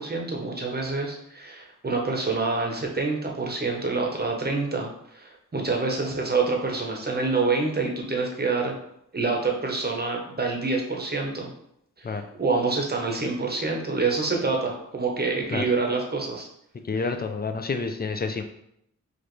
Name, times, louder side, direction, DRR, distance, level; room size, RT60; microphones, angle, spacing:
voice 1, 0.0-8.8 9.1-11.5 12.0-16.5 16.9-17.1, right 3 dB, 30° right, 1 dB, 0.9 m, -27 dB
voice 2, 16.9-18.4, left 4 dB, 30° left, 7 dB, 0.5 m, -28 dB
4.9 x 2.5 x 3.1 m, 0.75 s
wide cardioid pair, 75°, 31 cm